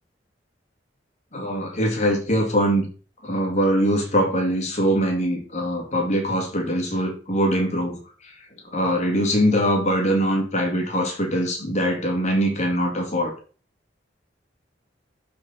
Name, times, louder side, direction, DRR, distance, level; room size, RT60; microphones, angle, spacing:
voice 1, 1.3-2.9 3.2-8.0 8.7-13.3, equal, 35° left, 2 dB, 2.2 m, -22 dB
11.5 x 4.3 x 4.0 m, 0.38 s
head